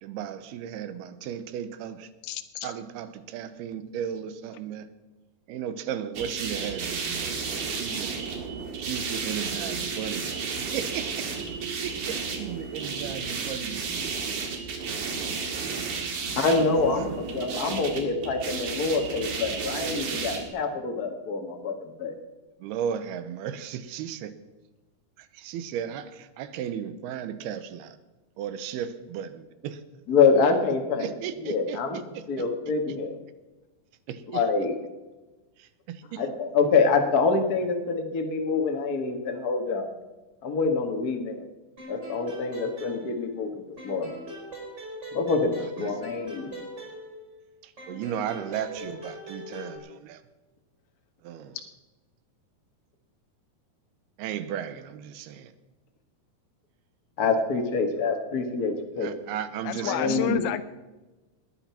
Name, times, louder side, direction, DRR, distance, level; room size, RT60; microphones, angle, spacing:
voice 1, 0.0-2.1 2.6-4.9 5.5-8.2 8.8-10.2 10.7-11.3 11.8-14.2 16.8-17.2 22.6-24.3 25.2-28.0 28.4-29.8 31.0-31.8 32.1-32.2 34.1-34.4 35.6-36.2 45.6-45.9 47.6-50.2 51.2-51.6 54.2-55.5 59.0-60.4, right 9 dB, 85° right, 12 dB, 2.8 m, -35 dB
voice 2, 2.2-2.7 59.6-60.6, left 12 dB, 90° left, 10 dB, 2.6 m, -30 dB
sound 1, 6.2-20.5, right 5 dB, 55° right, 3.2 m, -32 dB
voice 3, 16.4-22.1 30.1-31.1 31.4-32.0 32.3-33.2 34.3-34.8 36.2-39.9 40.4-41.4 41.9-44.1 45.1-45.5 45.8-46.6 57.2-59.1 59.8-60.4, left 4 dB, 65° left, 4 dB, 0.9 m, -26 dB
sound 2, 41.8-43.5 43.8-47.4 47.8-49.8, right 1 dB, 25° right, 5.3 m, -41 dB
20.0 x 10.5 x 5.8 m, 1.1 s
omnidirectional pair, 4.5 m